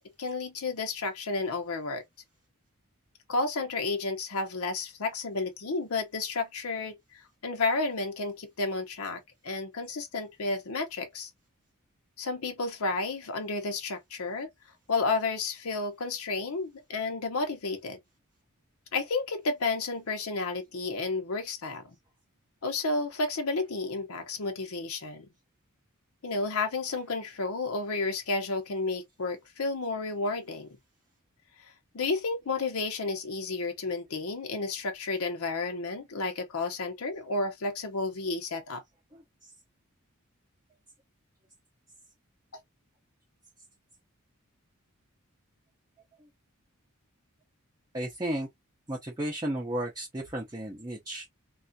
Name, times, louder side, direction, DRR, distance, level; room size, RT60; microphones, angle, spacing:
voice 1, 0.2-2.0 3.3-11.3 12.2-14.5 14.9-18.0 18.9-22.0 22.6-25.3 26.2-30.8 31.6-38.8, left 3 dB, 75° left, 0.7 m, -31 dB
voice 2, 47.9-48.5 48.9-51.3, right 1 dB, 20° right, 0.6 m, -33 dB
3.3 x 2.4 x 2.6 m
head